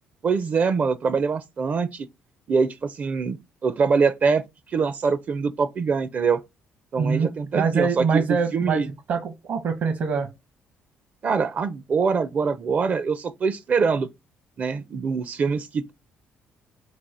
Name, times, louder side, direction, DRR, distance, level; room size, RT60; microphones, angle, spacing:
voice 1, 0.2-2.1 2.5-4.4 4.7-6.4 6.9-8.9 11.2-14.1 14.6-15.9, right 5 dB, 45° right, 0.5 m, -24 dB
voice 2, 7.0-10.3, right 5 dB, 65° right, 0.9 m, -24 dB
4.1 x 2.4 x 4.7 m
cardioid pair, 105°, 4 cm